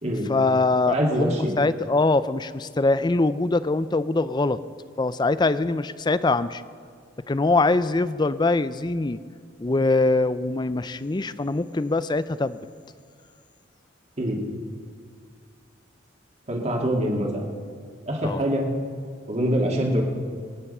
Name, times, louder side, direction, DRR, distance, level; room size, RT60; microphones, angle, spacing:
voice 1, 0.3-4.6 5.0-6.6 7.3-9.2 9.6-12.6 18.2-18.4, left 3 dB, 25° left, 15 dB, 0.5 m, -23 dB
voice 2, 0.9-1.5 14.2-14.4 16.5-17.4 18.1-18.7 19.3-20.0, equal, 35° right, 0 dB, 2.3 m, -24 dB
25.5 x 9.6 x 5.5 m, 2.2 s
head